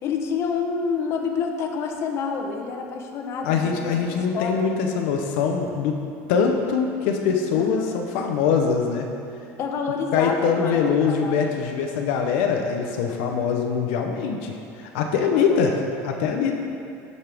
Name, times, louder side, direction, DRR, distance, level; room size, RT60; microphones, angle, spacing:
voice 1, 0.0-4.6 7.5-7.9 9.6-11.4 15.3-15.6, left 5 dB, 45° left, 3 dB, 0.8 m, -28 dB
voice 2, 3.4-6.0 6.3-9.1 10.1-16.6, left 6 dB, 80° left, 3 dB, 0.6 m, -23 dB
10.5 x 5.4 x 3.4 m, 2.5 s
cardioid pair, 135°, 6 cm